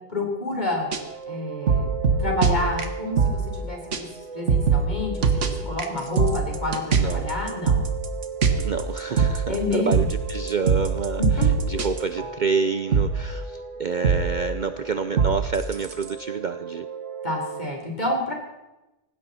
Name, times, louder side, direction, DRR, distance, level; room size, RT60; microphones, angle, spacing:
voice 1, 0.1-0.9 1.3-1.9 2.2-4.1 4.3-7.8 9.5-10.1 11.2-11.5 17.2-18.3, left 2 dB, 40° left, 0 dB, 4.0 m, -28 dB
sound 1, 0.8-3.7 3.9-4.0 4.3-12.6 12.9-17.7, right 5 dB, 85° right, 1.7 m, -24 dB
voice 2, 6.9-7.2 8.6-11.2 11.7-16.9, right 5 dB, 50° right, 10 dB, 0.7 m, -28 dB
18.5 x 16.0 x 4.2 m, 1.0 s
omnidirectional pair, 1.2 m